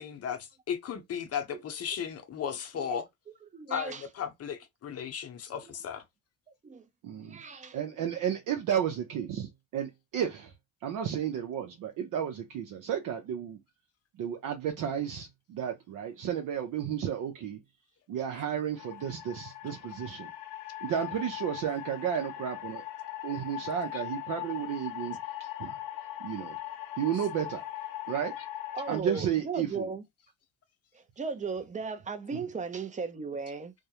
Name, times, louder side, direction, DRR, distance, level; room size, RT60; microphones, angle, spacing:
voice 1, 0.0-3.1 3.7-6.0, left 8 dB, 45° left, 0.6 m, -35 dB
voice 2, 3.5-4.0 6.6-6.9 7.2-7.8 28.7-30.0 30.9-33.7, right 4 dB, 20° right, 0.5 m, -36 dB
voice 3, 7.0-10.5 10.8-13.6 14.2-17.6 18.1-20.3 20.8-22.8 23.2-25.8 26.2-26.6 27.0-27.6 28.1-28.4 28.9-29.9 32.3-32.4, right 9 dB, 60° right, 0.6 m, -33 dB
sound 1, 18.8-29.0, left 14 dB, 85° left, 0.6 m, -40 dB
2.2 x 2.1 x 2.8 m
supercardioid pair, 80°, 36 cm